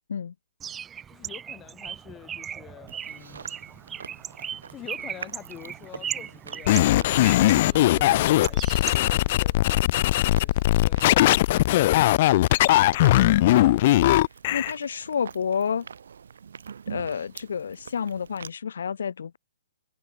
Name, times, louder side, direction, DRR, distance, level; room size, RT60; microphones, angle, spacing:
Bird, 0.6-9.4, right 8 dB, 10° right, 2.9 m, -38 dB
voice 1, 1.1-3.5 4.7-9.8, left 13 dB, 15° left, 6.4 m, -47 dB
Chewing mastication, 2.9-18.5, right 7 dB, 75° right, 5.0 m, -45 dB
sound 1, 6.7-14.7, left 16 dB, 35° left, 0.9 m, -20 dB
voice 2, 13.3-14.2 14.5-15.9 16.9-19.4, left 7 dB, 75° left, 4.1 m, -30 dB
hypercardioid pair, 160°, 0 cm